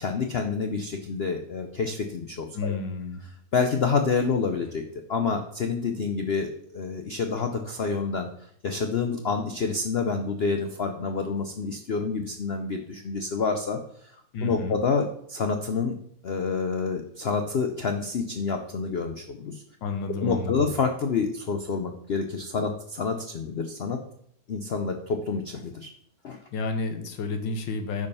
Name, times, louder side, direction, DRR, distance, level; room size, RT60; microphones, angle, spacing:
voice 1, 0.0-2.7 3.5-4.8 5.1-8.3 8.6-16.0 16.2-19.6 20.2-24.0 24.5-25.9 26.2-26.4, left 5 dB, 70° left, 5 dB, 0.5 m, -28 dB
voice 2, 2.5-3.3 14.3-14.8 19.8-20.7 26.5-28.1, left 3 dB, 90° left, 6 dB, 1.8 m, -31 dB
9.4 x 5.0 x 5.5 m, 0.69 s
omnidirectional pair, 2.0 m